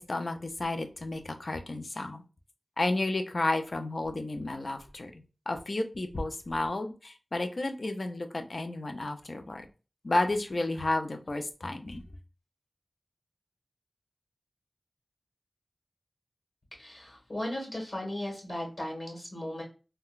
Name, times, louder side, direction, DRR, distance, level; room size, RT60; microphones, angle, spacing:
voice 1, 0.0-2.2 2.8-9.7 10.0-12.0, left 2 dB, 55° left, 6 dB, 0.4 m, -32 dB
voice 2, 16.8-19.6, left 1 dB, 40° left, -2 dB, 1.5 m, -36 dB
3.7 x 2.2 x 2.3 m, 0.33 s
wide cardioid pair, 75°, 0 cm